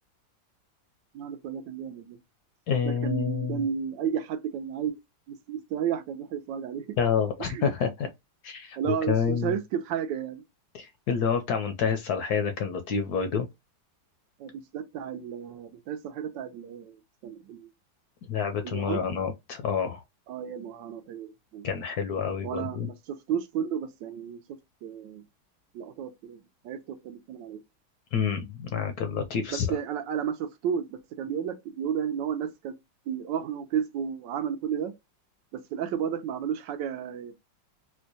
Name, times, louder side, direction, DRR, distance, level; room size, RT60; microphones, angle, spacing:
voice 1, 1.1-2.2 2.8-5.0 5.3-7.0 7.4-7.7 8.8-10.4 14.4-17.7 18.6-19.1 20.3-21.7 22.4-24.4 24.8-25.2 25.7-27.6 29.5-32.7 33.1-34.9 35.5-37.3, right 8 dB, 75° right, 1.3 m, -32 dB
voice 2, 2.7-3.6 7.0-8.1 8.4-9.5 10.7-13.5 18.3-20.0 21.6-22.9 28.1-29.7, left 6 dB, 70° left, 1.0 m, -28 dB
4.3 x 2.2 x 2.6 m
omnidirectional pair, 2.0 m